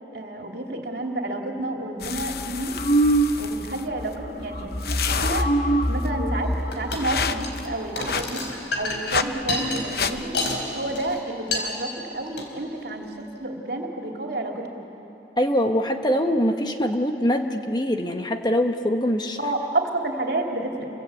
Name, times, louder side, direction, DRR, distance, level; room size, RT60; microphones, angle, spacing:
voice 1, 0.1-2.8 3.4-8.4 8.7-10.3 10.7-14.8 19.4-20.9, right 2 dB, 60° right, 1 dB, 2.9 m, -30 dB
sound 1, 2.0-11.2, left 6 dB, 55° left, 0.8 m, -32 dB
sound 2, 2.8-3.7 4.0-4.3 4.5-7.7, right 1 dB, 40° left, 1.4 m, -24 dB
sound 3, 6.7-7.1 7.3-7.6 8.0-10.6 10.9-11.2 11.5-11.7 12.3-12.5, left 3 dB, 90° left, 4.3 m, -29 dB
voice 2, 15.4-19.4, equal, 25° left, 5 dB, 1.1 m, -23 dB
29.5 x 23.5 x 8.4 m, 3.0 s
head